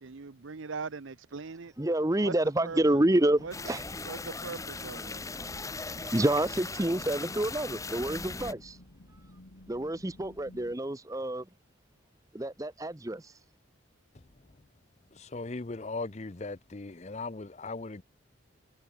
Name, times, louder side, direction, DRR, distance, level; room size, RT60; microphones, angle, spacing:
voice 1, 0.0-1.7 2.2-2.3 2.6-3.0 3.4-3.5 4.0-5.2, right 4 dB, 75° right, 0.8 m, -40 dB
voice 2, 1.8-3.9 5.9-8.8 9.1-9.2 9.7-11.5 12.3-13.4, right 1 dB, 15° right, 0.8 m, -28 dB
sound 1, 2.7-10.7, left 1 dB, 75° left, 2.3 m, -55 dB
sound 2, 3.5-8.5, left 3 dB, 15° left, 1.3 m, -39 dB
voice 3, 15.1-18.0, left 3 dB, 35° left, 0.7 m, -38 dB
head